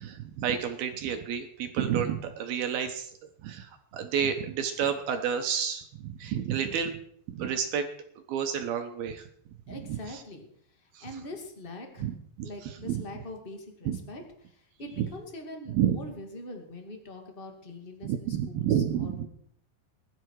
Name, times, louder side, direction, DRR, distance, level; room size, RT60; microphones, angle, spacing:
voice 1, 0.0-3.1 3.4-7.0 7.3-7.9 8.3-9.3 9.7-10.2 10.9-11.1 12.0-12.1 12.4-13.0 13.9-14.0 15.0-15.1 15.7-16.0 18.0-19.3, right 8 dB, 70° right, 6 dB, 2.5 m, -30 dB
voice 2, 9.7-12.1 12.4-19.3, left 1 dB, 45° left, 3 dB, 0.7 m, -43 dB
21.0 x 11.5 x 4.8 m, 0.67 s
omnidirectional pair, 5.2 m